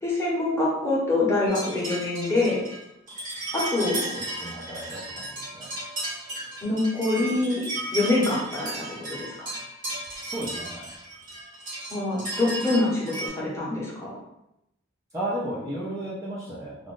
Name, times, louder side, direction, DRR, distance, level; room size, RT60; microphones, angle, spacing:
voice 1, 0.0-2.6 3.5-4.0 6.6-7.6 7.9-8.8 9.1-9.5 11.9-14.1, left 2 dB, 15° left, -6 dB, 1.0 m, -25 dB
sound 1, 1.5-13.3, right 1 dB, 45° right, 1.3 m, -35 dB
voice 2, 4.4-5.7 10.2-10.9 15.1-16.9, right 1 dB, 15° right, -8 dB, 0.6 m, -34 dB
2.5 x 2.4 x 3.6 m, 0.84 s
head